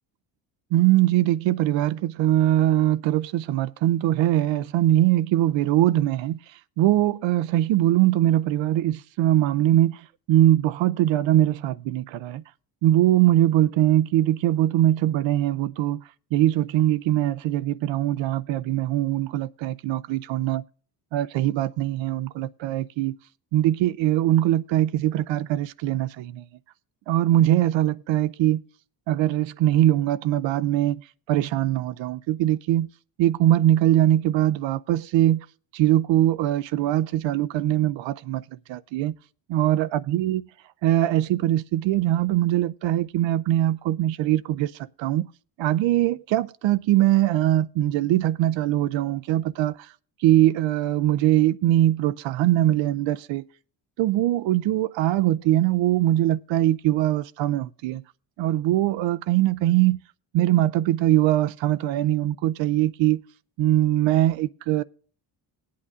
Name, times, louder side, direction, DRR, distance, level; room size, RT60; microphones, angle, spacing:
voice 1, 0.7-6.4 6.8-12.4 12.8-16.0 16.3-20.6 21.1-23.2 23.5-26.4 27.1-28.6 29.1-31.0 31.3-32.9 33.2-35.5 35.7-38.4 38.7-39.2 39.5-40.4 40.8-45.3 45.6-49.9 50.2-53.4 54.0-58.0 58.4-60.0 60.3-63.2 63.6-64.8, right 13 dB, 70° right, 0.6 m, -22 dB
20.5 x 8.5 x 2.4 m
cardioid pair, 105°, 46 cm